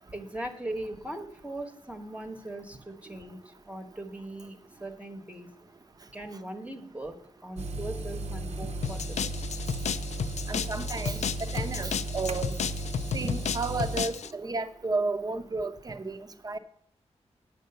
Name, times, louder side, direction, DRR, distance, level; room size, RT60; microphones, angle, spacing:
voice 1, 0.1-5.5 6.1-9.4, right 1 dB, 10° right, 1.0 m, -40 dB
sound 1, 7.6-14.0, right 2 dB, 70° right, 0.9 m, -35 dB
sound 2, 8.8-14.3, left 7 dB, 80° left, 0.4 m, -33 dB
voice 2, 10.5-12.6 13.1-16.6, right 3 dB, 35° right, 0.7 m, -32 dB
8.6 x 6.7 x 6.7 m
wide cardioid pair, 115°, 12 cm